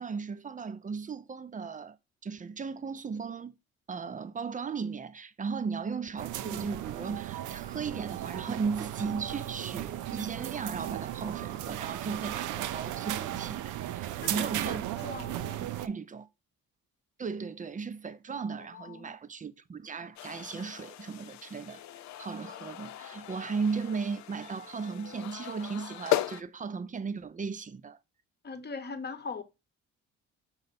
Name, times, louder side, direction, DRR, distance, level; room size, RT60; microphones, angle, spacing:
voice 1, 0.0-2.0 2.2-3.5 3.9-14.8 15.8-16.3 17.2-21.8 22.2-28.0, right 5 dB, 25° right, 0.5 m, -36 dB
sound 1, 6.2-15.9, right 13 dB, 80° right, 0.5 m, -36 dB
voice 2, 14.2-15.7 18.6-19.1 28.4-29.4, left 4 dB, 35° left, 0.9 m, -41 dB
sound 2, 20.2-26.4, left 14 dB, 65° left, 0.5 m, -37 dB
5.4 x 4.5 x 4.1 m
cardioid pair, 90°, 30 cm